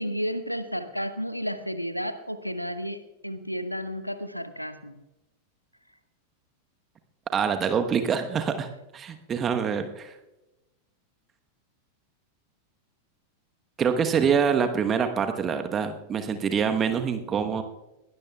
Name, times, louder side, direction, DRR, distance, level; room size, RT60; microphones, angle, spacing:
voice 1, 0.0-5.0, equal, 90° left, 12 dB, 0.8 m, -32 dB
voice 2, 7.3-10.1 13.8-17.6, right 6 dB, 25° right, 7 dB, 1.1 m, -25 dB
22.0 x 17.5 x 2.3 m, 0.98 s
figure-of-eight pair, 90°, 0 cm